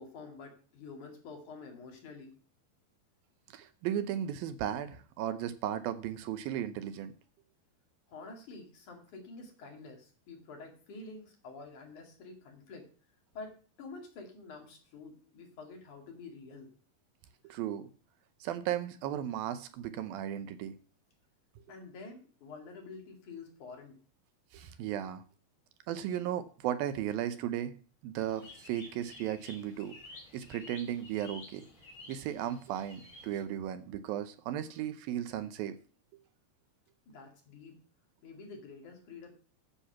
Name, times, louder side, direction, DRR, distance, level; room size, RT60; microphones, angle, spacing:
voice 1, 0.0-2.4 8.1-12.9 13.3-16.7 21.7-24.0 24.6-24.8 37.1-37.8 38.2-39.3, left 3 dB, 55° left, 2 dB, 3.6 m, -48 dB
voice 2, 3.5-7.1 17.4-17.9 18.4-20.7 24.5-25.2 25.9-27.7 28.0-30.0 30.3-31.7 32.1-35.8, right 11 dB, 75° right, 11 dB, 2.4 m, -35 dB
sound 1, 28.2-33.4, left 2 dB, 35° left, 3.5 m, -52 dB
10.0 x 7.8 x 5.8 m, 0.40 s
omnidirectional pair, 4.4 m